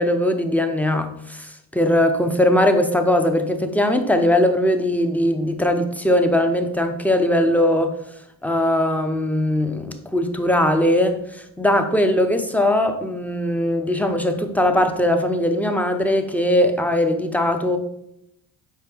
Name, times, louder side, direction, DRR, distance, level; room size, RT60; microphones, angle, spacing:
voice 1, 0.0-8.0 8.4-11.2 11.6-17.8, left 1 dB, 5° left, 6 dB, 0.8 m, -20 dB
5.9 x 4.5 x 4.5 m, 0.79 s
supercardioid pair, 70°, 45 cm